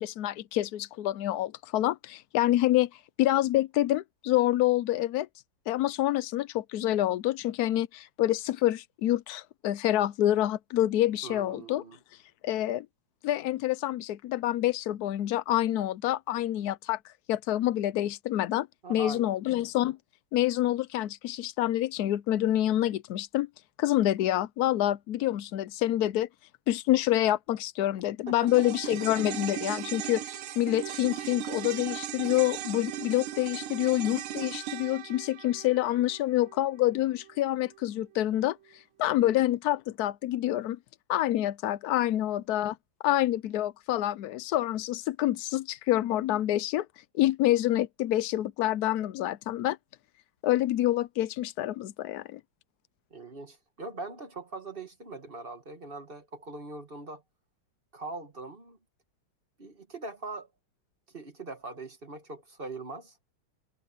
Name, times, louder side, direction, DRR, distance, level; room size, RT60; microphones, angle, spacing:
voice 1, 0.0-5.3 5.7-11.8 12.4-12.9 13.2-20.0 20.3-23.5 23.8-26.3 26.7-40.8 41.1-42.8 43.0-46.9 47.1-49.8 50.4-52.4, left 14 dB, 80° left, 0.8 m, -27 dB
voice 2, 11.2-12.0 18.8-19.3 28.3-28.5 39.2-39.4 53.1-57.2 57.9-58.8 59.6-60.5 61.1-63.2, right 2 dB, 30° right, 1.5 m, -41 dB
sound 1, 28.5-37.0 37.2-37.3, right 11 dB, 85° right, 1.8 m, -38 dB
omnidirectional pair, 2.3 m